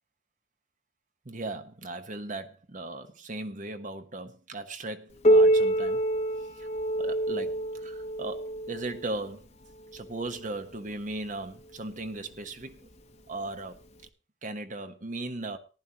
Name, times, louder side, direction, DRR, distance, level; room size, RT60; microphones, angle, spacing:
voice 1, 1.2-6.0 6.6-6.7 7.0-9.5 9.9-12.8 13.3-13.8 14.4-15.6, right 2 dB, 45° right, 1.1 m, -37 dB
Piano, 5.2-10.6 11.4-11.5 12.0-12.1 12.9-13.0 14.0-14.1, right 1 dB, 40° left, 1.0 m, -26 dB
15.0 x 11.0 x 2.9 m
head